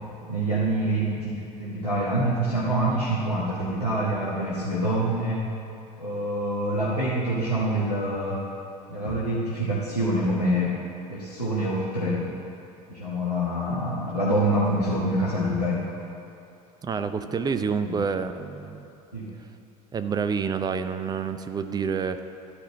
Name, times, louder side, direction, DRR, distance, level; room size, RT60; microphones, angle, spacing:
voice 1, 0.2-5.5 6.0-8.5 8.9-10.7 11.1-12.4 12.9-15.8 17.9-18.0 19.1-19.3, right 1 dB, 90° left, -9 dB, 1.2 m, -26 dB
voice 2, 16.8-18.9 19.9-22.2, right 6 dB, 20° right, 9 dB, 0.6 m, -28 dB
11.5 x 5.0 x 8.6 m, 2.7 s
figure-of-eight pair, 65°, 20 cm